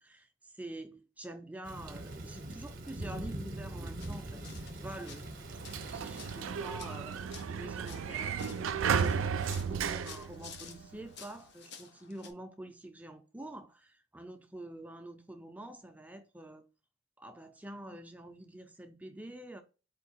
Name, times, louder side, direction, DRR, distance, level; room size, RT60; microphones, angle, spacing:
voice 1, 0.0-4.4 4.7-5.2 5.8-16.6 17.2-19.6, right 1 dB, 5° right, 0.4 m, -47 dB
Thunder / Rain, 1.6-7.4, right 1 dB, 45° right, 0.7 m, -43 dB
sound 1, 4.0-12.3, left 6 dB, 55° left, 0.6 m, -53 dB
Sliding door, 5.4-11.1, right 6 dB, 75° right, 0.4 m, -34 dB
4.4 x 2.7 x 4.0 m
head